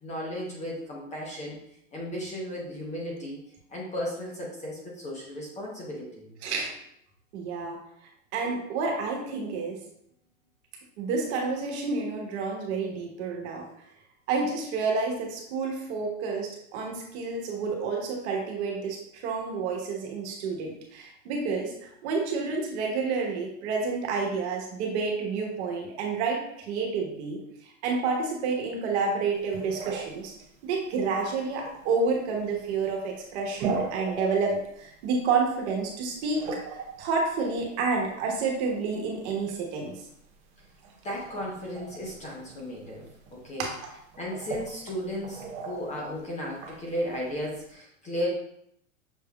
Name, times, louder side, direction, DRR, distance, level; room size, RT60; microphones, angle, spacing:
voice 1, 0.0-1.6 1.9-3.4 3.7-6.3 41.0-43.1 43.3-43.6 44.2-48.3, equal, 15° left, -3 dB, 0.8 m, -35 dB
voice 2, 6.4-6.7 7.3-7.8 8.3-9.8 11.0-13.6 14.3-30.3 30.6-40.0 43.6-43.8, right 4 dB, 50° right, 0 dB, 1.3 m, -29 dB
sound 1, 29.3-47.7, right 4 dB, 15° right, 0.4 m, -41 dB
6.4 x 3.3 x 2.3 m, 0.73 s
hypercardioid pair, 130°, 42 cm